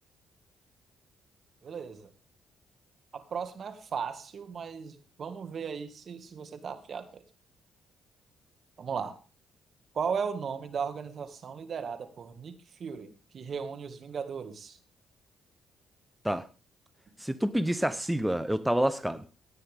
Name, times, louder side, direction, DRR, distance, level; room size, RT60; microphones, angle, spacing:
voice 1, 1.6-2.1 3.1-7.2 8.8-9.2 9.9-14.8 18.0-18.1, right 6 dB, 55° right, 2.0 m, -36 dB
voice 2, 17.2-19.2, right 1 dB, 5° right, 0.8 m, -28 dB
17.5 x 9.4 x 3.6 m
supercardioid pair, 65°, 0 cm